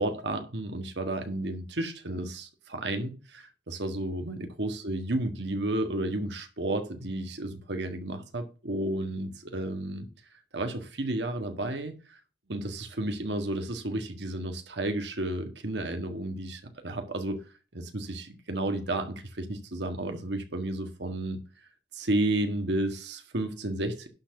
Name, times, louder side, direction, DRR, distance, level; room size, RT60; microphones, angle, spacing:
voice 1, 0.0-10.1 10.5-12.2 12.5-17.4 17.7-21.4 21.9-24.1, right 1 dB, 75° right, 1.7 m, -32 dB
11.5 x 4.2 x 7.1 m
head